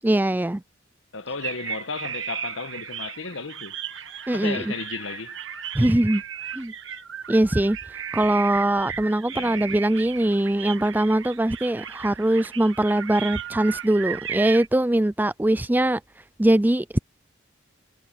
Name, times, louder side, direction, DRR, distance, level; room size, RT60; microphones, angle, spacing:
voice 1, 0.0-0.6 4.3-4.7 5.7-6.2 6.5-6.7 7.3-7.8 8.1-16.0 16.4-17.0, right 1 dB, 10° right, 0.4 m, -22 dB
voice 2, 1.1-3.8 4.3-5.4 9.3-9.7, left 4 dB, 80° left, 1.2 m, -34 dB
sound 1, 1.3-14.7, right 8 dB, 75° right, 1.5 m, -36 dB
head